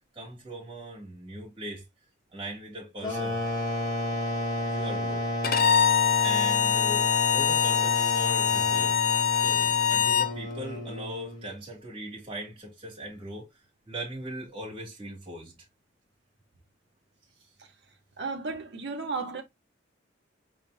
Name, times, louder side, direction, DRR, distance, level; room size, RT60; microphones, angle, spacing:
voice 1, 0.1-1.8 2.3-3.4 4.6-5.3 6.2-9.0 9.4-13.5 13.9-15.5, right 1 dB, 25° right, 2.6 m, -39 dB
sound 1, 3.0-11.5, left 1 dB, 20° left, 2.7 m, -31 dB
Bowed string instrument, 5.4-10.3, left 8 dB, 50° left, 0.7 m, -24 dB
voice 2, 18.2-19.4, right 4 dB, 60° right, 1.0 m, -33 dB
4.6 x 3.6 x 2.6 m
head